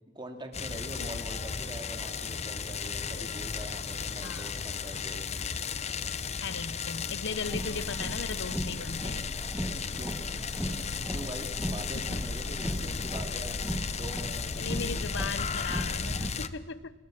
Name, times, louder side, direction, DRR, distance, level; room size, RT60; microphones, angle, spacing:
voice 1, 0.1-5.3 10.0-10.1 10.7-10.8 11.1-15.0, right 1 dB, 25° right, 4 dB, 2.6 m, -43 dB
sound 1, 0.5-16.5, left 5 dB, 35° left, 0.8 m, -35 dB
voice 2, 4.2-4.5 6.4-9.3 11.9-12.1 14.6-17.0, left 5 dB, 65° left, 15 dB, 0.9 m, -38 dB
Car, 7.3-16.3, equal, 5° right, 1.7 m, -37 dB
28.5 x 19.5 x 6.0 m, 1.3 s
head